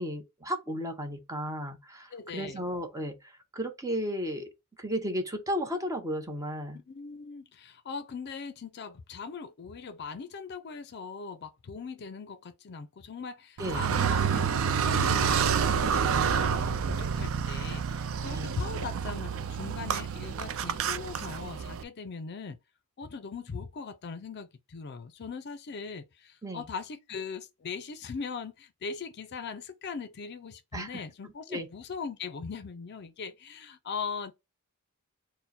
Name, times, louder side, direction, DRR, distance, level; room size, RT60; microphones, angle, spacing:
voice 1, 0.0-4.5 4.8-6.8 13.6-13.9 18.3-18.5 26.4-26.6 30.7-31.0 31.5-31.7, equal, 15° right, 0.8 m, -34 dB
voice 2, 2.1-2.6 6.7-22.6 23.0-34.3, left 5 dB, 50° left, 0.5 m, -40 dB
Car, 13.6-21.8, right 6 dB, 65° right, 0.4 m, -28 dB
4.4 x 2.1 x 4.0 m
head